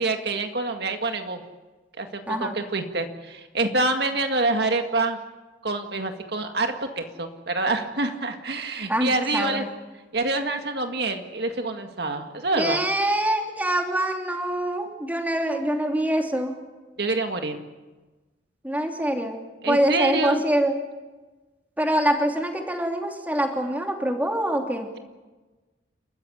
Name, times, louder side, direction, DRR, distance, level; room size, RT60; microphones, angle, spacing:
voice 1, 0.0-1.4 2.0-5.2 5.6-9.6 10.1-12.8 17.0-17.6 19.6-20.4, right 2 dB, 60° right, 5 dB, 1.9 m, -26 dB
voice 2, 2.3-2.6 8.9-9.7 12.6-16.5 18.6-20.7 21.8-24.9, right 1 dB, 10° right, 3 dB, 2.9 m, -25 dB
29.5 x 14.5 x 9.9 m, 1.2 s
head